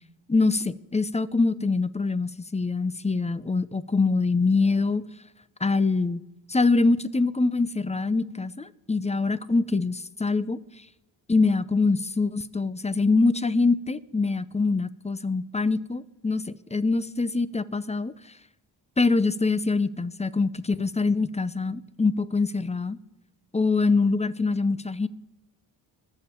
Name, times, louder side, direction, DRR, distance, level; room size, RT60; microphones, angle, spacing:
voice 1, 0.3-5.0 5.6-6.2 6.5-10.6 11.3-18.1 19.0-23.0 23.5-25.1, left 3 dB, 15° left, 16 dB, 0.6 m, -24 dB
21.0 x 7.1 x 4.5 m, 1.0 s
cardioid pair, 50°, 48 cm